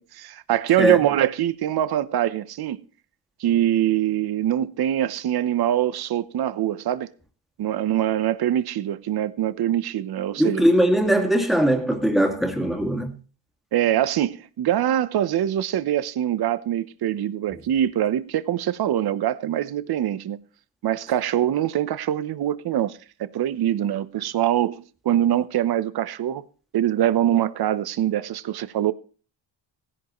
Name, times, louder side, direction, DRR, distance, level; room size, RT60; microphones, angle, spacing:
voice 1, 0.0-2.9 3.4-7.1 7.6-10.6 13.7-20.4 20.8-26.4 26.7-28.9, right 11 dB, 55° right, 0.9 m, -23 dB
voice 2, 10.4-13.1, right 1 dB, ahead, 2.2 m, -20 dB
16.0 x 11.0 x 3.1 m
cardioid pair, 105°, 46 cm